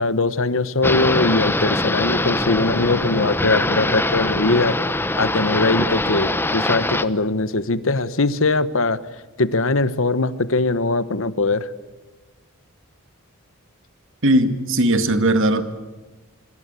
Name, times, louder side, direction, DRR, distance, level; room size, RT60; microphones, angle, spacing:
voice 1, 0.0-4.8 5.1-9.0 9.4-11.7, left 3 dB, 60° left, 14 dB, 1.2 m, -21 dB
sound 1, 0.8-7.0, left 2 dB, 10° left, 0.9 m, -22 dB
voice 2, 14.2-15.6, right 1 dB, 60° right, 8 dB, 2.2 m, -18 dB
26.0 x 25.5 x 8.3 m, 1.2 s
head